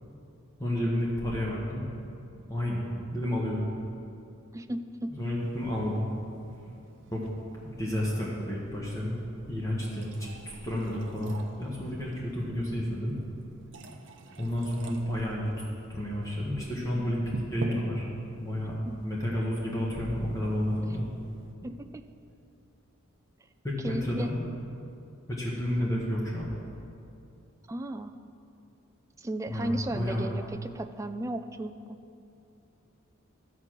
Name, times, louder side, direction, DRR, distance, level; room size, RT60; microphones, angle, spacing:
voice 1, 0.6-1.9 2.5-3.6 5.1-6.1 7.1-7.2 7.8-9.2 9.5-10.3 10.6-13.2 14.4-15.5 15.9-17.2 17.5-18.1 18.4-18.7 19.0-21.1 23.6-24.4 25.3-26.5 29.5-30.3, left 1 dB, 15° left, -5 dB, 1.3 m, -31 dB
voice 2, 4.5-5.1 18.6-19.0 21.6-22.0 23.8-24.3 27.7-28.1 29.2-32.0, right 1 dB, 15° right, 8 dB, 0.3 m, -35 dB
sound 1, 5.2-21.5, right 2 dB, 60° right, 0.7 m, -47 dB
12.5 x 4.8 x 7.4 m, 2.6 s
head